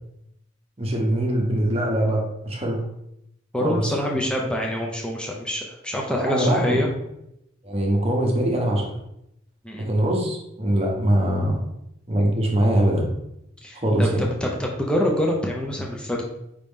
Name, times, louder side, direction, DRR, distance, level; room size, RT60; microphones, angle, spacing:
voice 1, 0.8-2.8 3.6-3.9 6.1-6.8 7.6-8.9 9.8-11.6 12.1-13.1 13.7-14.2, right 1 dB, 30° right, -1 dB, 0.9 m, -22 dB
voice 2, 3.5-6.9 9.6-9.9 13.6-14.1 14.4-16.2, equal, 5° left, -1 dB, 0.6 m, -26 dB
5.1 x 2.9 x 3.6 m, 0.81 s
head